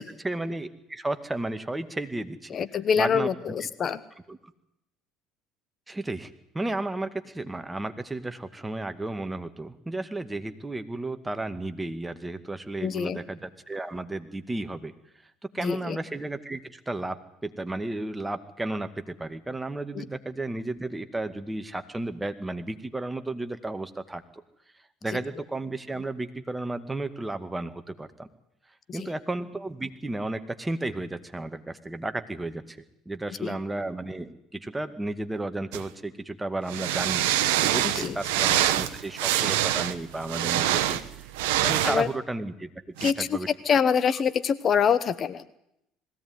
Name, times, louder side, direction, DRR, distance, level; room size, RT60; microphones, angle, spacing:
voice 1, 0.0-2.6 3.0-3.3 3.6-3.7 4.3-4.5 5.9-14.9 15.5-24.2 25.0-28.3 28.9-32.8 33.1-37.2 37.6-42.7 43.0-43.5, right 2 dB, 15° right, 8 dB, 2.2 m, -33 dB
voice 2, 2.5-4.0 12.8-13.2 15.6-16.0 19.9-20.0 28.9-29.1 33.4-33.6 37.8-38.2 39.4-39.5 41.8-42.1 43.0-43.4 43.6-45.4, left 7 dB, 45° left, 16 dB, 1.1 m, -25 dB
sound 1, 35.7-35.8 36.7-42.0 43.0-43.1, right 13 dB, 75° right, 1.1 m, -25 dB
20.5 x 17.0 x 9.7 m, 0.82 s
hypercardioid pair, 65°, 0 cm